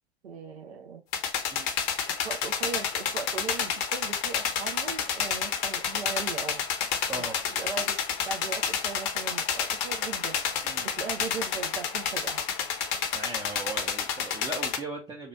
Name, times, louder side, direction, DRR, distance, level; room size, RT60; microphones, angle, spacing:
voice 1, 0.2-1.0 2.1-6.6 7.5-8.0 8.2-10.4 10.8-12.4, right 5 dB, 75° right, 4 dB, 0.6 m, -38 dB
sound 1, 1.1-14.8, left 7 dB, 45° left, 0.7 m, -30 dB
voice 2, 7.1-7.4 10.6-10.9 13.1-15.3, right 3 dB, 15° right, -1 dB, 0.5 m, -38 dB
2.9 x 2.3 x 3.9 m, 0.29 s
figure-of-eight pair, 95°, 32 cm